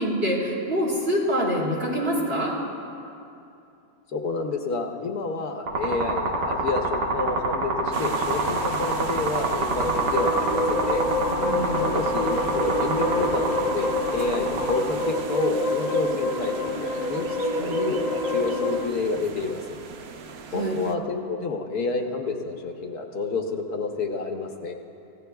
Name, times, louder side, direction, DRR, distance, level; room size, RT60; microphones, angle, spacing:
voice 1, 0.0-2.6 11.4-11.9 20.5-20.8, equal, 35° right, -5 dB, 2.7 m, -25 dB
voice 2, 4.1-11.0 11.8-19.6 20.5-24.7, left 3 dB, 65° left, 2 dB, 1.4 m, -29 dB
sound 1, 5.7-14.7, right 3 dB, 90° right, 2.2 m, -26 dB
sound 2, 7.9-20.9, right 5 dB, 60° right, 0.7 m, -38 dB
sound 3, 9.4-18.8, left 1 dB, 20° left, 1.6 m, -27 dB
27.5 x 16.5 x 2.3 m, 2.7 s
omnidirectional pair, 1.8 m